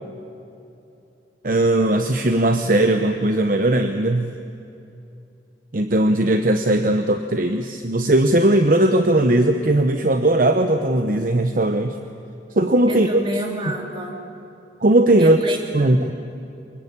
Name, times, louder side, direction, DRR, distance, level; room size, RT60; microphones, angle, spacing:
voice 1, 1.4-4.3 5.7-12.0 12.5-13.2 14.8-15.4 15.7-16.1, right 1 dB, 50° right, 7 dB, 0.9 m, -18 dB
voice 2, 12.9-14.2 15.2-16.1, equal, 25° right, 2 dB, 3.0 m, -29 dB
24.5 x 21.0 x 8.7 m, 2.7 s
head